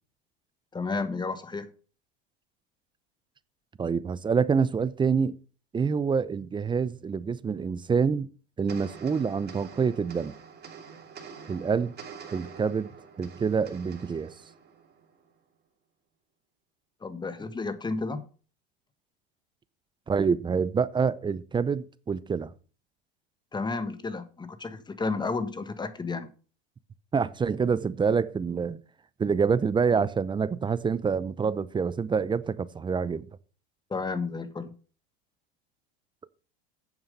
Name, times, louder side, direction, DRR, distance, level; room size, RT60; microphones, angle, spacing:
voice 1, 0.7-1.7 17.0-18.2 23.5-26.3 33.9-34.7, left 3 dB, 15° left, 1.5 m, -32 dB
voice 2, 3.8-5.4 5.7-8.3 8.6-10.3 11.5-11.9 12.3-12.9 13.2-14.3 20.1-22.5 27.1-28.8 29.2-33.3, right 5 dB, 15° right, 0.6 m, -26 dB
sound 1, 8.7-15.3, right 6 dB, 35° right, 2.8 m, -46 dB
9.0 x 7.3 x 5.3 m
hypercardioid pair, 105°, 29 cm